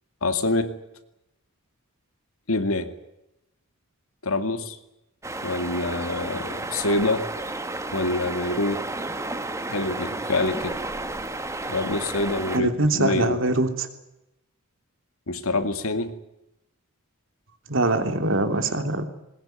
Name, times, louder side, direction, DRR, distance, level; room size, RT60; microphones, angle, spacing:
voice 1, 0.2-0.8 2.5-2.9 4.2-4.8 5.4-7.3 7.9-8.8 9.7-10.8 11.7-13.4 15.3-16.2, left 2 dB, 70° left, 9 dB, 2.4 m, -26 dB
sound 1, 5.2-12.6, right 2 dB, 15° right, 1.5 m, -32 dB
voice 2, 12.5-13.9 17.7-19.1, right 2 dB, 60° right, 8 dB, 3.1 m, -23 dB
21.5 x 21.0 x 9.4 m, 0.88 s
head